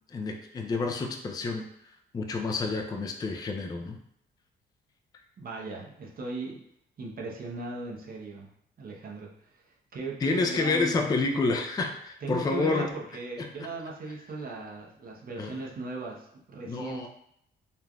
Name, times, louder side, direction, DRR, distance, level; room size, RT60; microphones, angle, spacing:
voice 1, 0.1-1.7 2.1-4.0 10.2-12.9 13.4-13.5 15.4-15.7 16.6-17.1, left 3 dB, 20° left, 3 dB, 0.3 m, -29 dB
voice 2, 5.4-6.6 7.0-8.5 8.8-9.6 9.9-11.0 12.2-17.1, right 3 dB, 45° right, -2 dB, 0.7 m, -38 dB
3.2 x 2.5 x 2.2 m, 0.74 s
cardioid pair, 90°, 20 cm